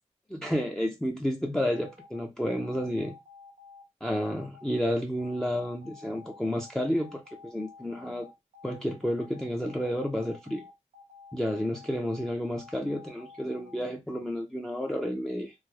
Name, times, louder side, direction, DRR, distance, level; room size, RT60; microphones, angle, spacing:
voice 1, 0.3-3.1 4.0-8.3 8.6-10.7 11.3-15.5, equal, 5° left, 0.4 m, -31 dB
sound 1, 1.7-13.7, left 5 dB, 70° right, 0.7 m, -51 dB
3.1 x 2.0 x 3.6 m
wide cardioid pair, 110°, 13 cm